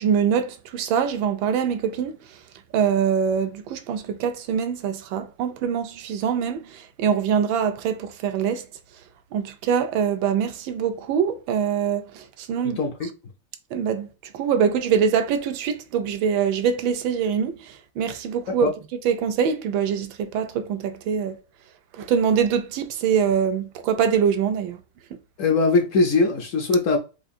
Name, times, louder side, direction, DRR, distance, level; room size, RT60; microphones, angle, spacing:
voice 1, 0.0-2.2 2.7-8.7 9.3-13.1 13.7-21.4 21.9-24.8, right 7 dB, 85° right, 1.3 m, -24 dB
voice 2, 12.8-13.1 18.5-18.7 25.4-27.0, left 3 dB, 70° left, 0.7 m, -21 dB
4.7 x 2.4 x 2.6 m
omnidirectional pair, 2.1 m